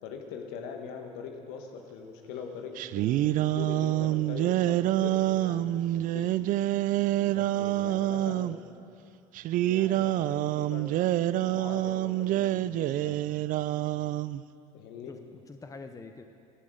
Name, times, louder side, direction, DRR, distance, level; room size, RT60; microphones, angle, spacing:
voice 1, 0.0-6.3 7.8-8.7 9.6-13.2 14.7-15.1, left 6 dB, 65° left, 3 dB, 1.7 m, -42 dB
sound 1, 2.8-8.6 9.4-14.4, right 14 dB, 45° right, 0.4 m, -27 dB
voice 2, 7.2-8.1 15.1-16.2, left 3 dB, 15° left, 6 dB, 0.8 m, -46 dB
14.0 x 12.0 x 5.1 m, 2.7 s
hypercardioid pair, 70°, 19 cm